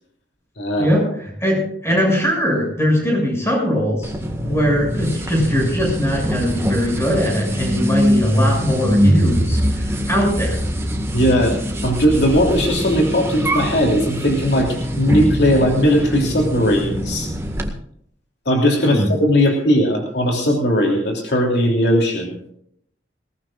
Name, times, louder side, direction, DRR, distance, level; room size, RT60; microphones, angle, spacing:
voice 1, 0.6-0.9 11.1-11.6 11.8-17.3 18.4-22.5, equal, 65° left, 1 dB, 3.2 m, -18 dB
voice 2, 1.4-4.1 4.4-10.6 18.8-19.1, equal, 15° left, 0 dB, 7.2 m, -20 dB
sound 1, 4.0-17.7, equal, 15° right, 1.9 m, -22 dB
21.0 x 18.5 x 2.6 m, 0.70 s
head